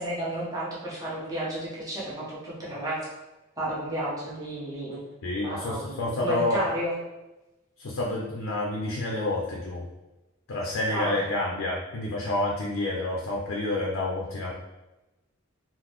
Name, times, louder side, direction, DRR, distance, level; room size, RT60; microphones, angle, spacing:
voice 1, 0.0-3.0 3.6-5.0 5.4-7.0 10.9-11.2, right 1 dB, 20° right, -8 dB, 0.8 m, -32 dB
voice 2, 5.2-6.6 7.8-9.8 10.5-14.5, left 2 dB, 70° left, -2 dB, 0.5 m, -29 dB
3.8 x 2.0 x 3.1 m, 1.0 s
head